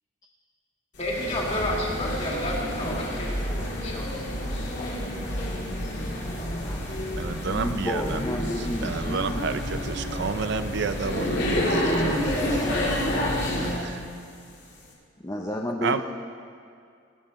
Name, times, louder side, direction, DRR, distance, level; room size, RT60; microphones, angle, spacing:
sound 1, 1.0-13.9, equal, 60° left, 2.4 m, -29 dB
voice 1, 1.0-4.3, left 1 dB, 35° left, -3 dB, 2.6 m, -31 dB
voice 2, 6.6-7.2 7.5-9.6 15.2-16.0, left 1 dB, 15° left, 1 dB, 0.7 m, -32 dB
voice 3, 7.2-8.2 8.6-12.2 13.7-14.1 15.8-16.0, right 4 dB, 60° right, 10 dB, 0.5 m, -30 dB
19.0 x 10.0 x 4.3 m, 2.3 s
head